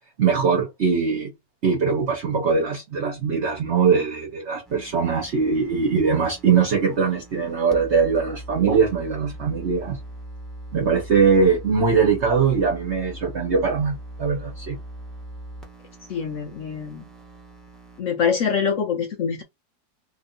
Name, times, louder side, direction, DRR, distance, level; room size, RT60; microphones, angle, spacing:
voice 1, 0.2-1.3 1.6-10.0 10.7-14.8, right 5 dB, 45° right, 1.1 m, -21 dB
sound 1, 4.6-18.0, right 1 dB, ahead, 0.5 m, -40 dB
voice 2, 16.1-17.1 18.0-19.4, left 6 dB, 85° left, 0.6 m, -24 dB
3.0 x 2.7 x 3.9 m
omnidirectional pair, 2.0 m